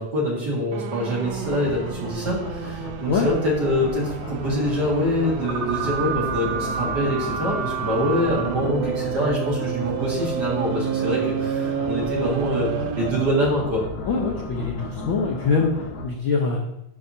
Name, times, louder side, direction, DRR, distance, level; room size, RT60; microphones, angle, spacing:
voice 1, 0.0-12.7 13.0-13.8, equal, 45° right, -4 dB, 1.6 m, -25 dB
sound 1, 0.7-13.4, right 7 dB, 75° right, 1.6 m, -29 dB
sound 2, 1.2-16.0, left 3 dB, 65° left, 1.4 m, -35 dB
voice 2, 14.1-15.7 16.0-16.6, left 4 dB, 90° left, -1 dB, 1.0 m, -23 dB
11.5 x 4.8 x 2.7 m, 0.84 s
omnidirectional pair, 3.4 m